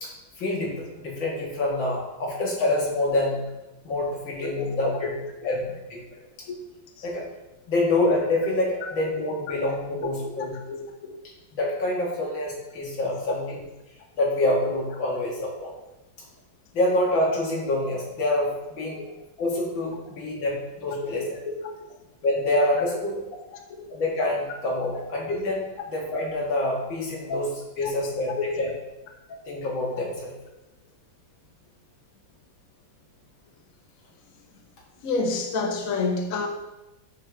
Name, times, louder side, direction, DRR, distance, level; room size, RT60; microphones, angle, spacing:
voice 1, 0.0-3.4 3.8-5.1 5.4-6.0 7.0-7.2 7.7-10.5 11.5-13.6 14.2-15.7 16.7-19.0 19.4-21.3 22.2-23.2 23.9-28.7 29.5-30.3, left 1 dB, 90° left, -3 dB, 2.5 m, -26 dB
voice 2, 10.7-11.1 19.0-19.1 21.0-21.1 21.5-21.6 23.5-23.8 27.3-27.4 28.0-28.1 28.4-28.6 35.0-36.5, left 3 dB, 55° left, 2 dB, 1.2 m, -28 dB
9.3 x 4.9 x 3.5 m, 1.0 s
omnidirectional pair, 2.0 m